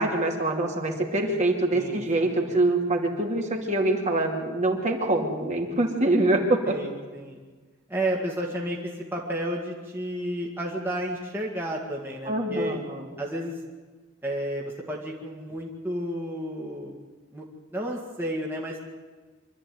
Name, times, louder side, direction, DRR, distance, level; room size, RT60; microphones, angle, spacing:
voice 1, 0.0-6.8 12.3-13.1, right 2 dB, 35° right, 1 dB, 2.6 m, -25 dB
voice 2, 1.7-2.5 6.7-7.4 7.9-12.8 13.2-13.6 14.2-17.0 17.3-17.4 17.7-18.8, right 1 dB, 10° right, -2 dB, 2.1 m, -32 dB
25.0 x 12.5 x 9.4 m, 1.4 s
head